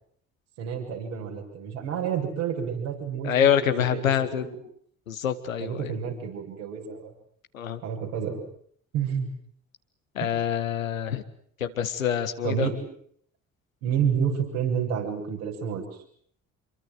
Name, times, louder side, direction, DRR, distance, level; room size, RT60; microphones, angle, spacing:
voice 1, 0.6-4.6 5.6-7.1 7.8-8.4 8.9-9.3 10.2-10.3 12.4-12.8 13.8-15.8, right 7 dB, 70° right, 0 dB, 7.2 m, -29 dB
voice 2, 3.2-4.4 5.1-5.9 7.5-7.8 10.2-11.2 11.6-12.7, left 9 dB, 80° left, 9 dB, 1.8 m, -25 dB
27.0 x 23.5 x 8.0 m, 0.62 s
figure-of-eight pair, 50°, 40 cm